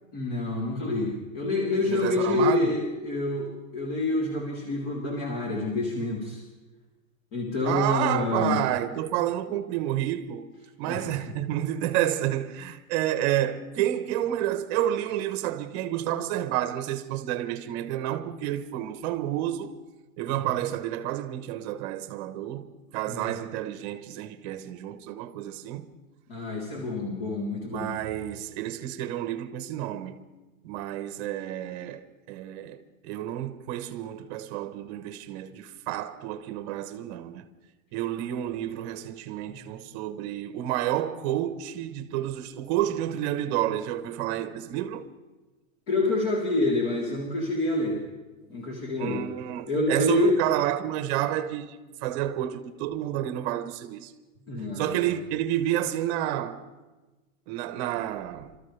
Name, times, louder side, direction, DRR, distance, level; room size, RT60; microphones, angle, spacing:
voice 1, 0.1-6.4 7.3-8.6 10.9-11.1 23.1-23.3 26.3-28.0 45.9-48.0 48.5-49.2 49.7-50.4 54.5-55.2, left 2 dB, 45° left, 3.6 m, -27 dB
voice 2, 1.9-2.7 7.6-10.5 10.8-19.7 20.2-25.9 27.7-30.2 30.6-37.5 37.9-45.1 49.0-54.1 54.8-56.7 57.5-58.6, right 12 dB, 30° right, 1.1 m, -30 dB
28.0 x 13.5 x 3.4 m
hypercardioid pair, 160°, 42 cm